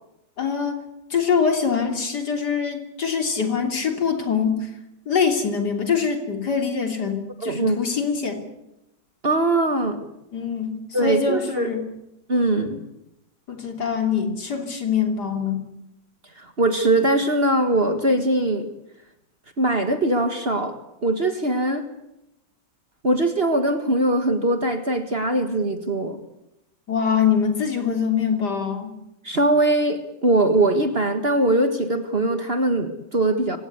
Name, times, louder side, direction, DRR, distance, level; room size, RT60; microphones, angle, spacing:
voice 1, 0.4-0.8 1.1-4.7 5.1-8.4 10.3-11.8 13.5-15.6 26.9-28.9, left 6 dB, 60° left, 4 dB, 3.6 m, -24 dB
voice 2, 7.4-7.8 9.2-10.0 10.9-11.7 12.3-12.8 16.4-18.7 19.6-21.9 23.0-26.2 29.2-33.6, right 1 dB, 35° right, 8 dB, 1.7 m, -21 dB
24.5 x 18.0 x 8.2 m, 0.87 s
omnidirectional pair, 2.0 m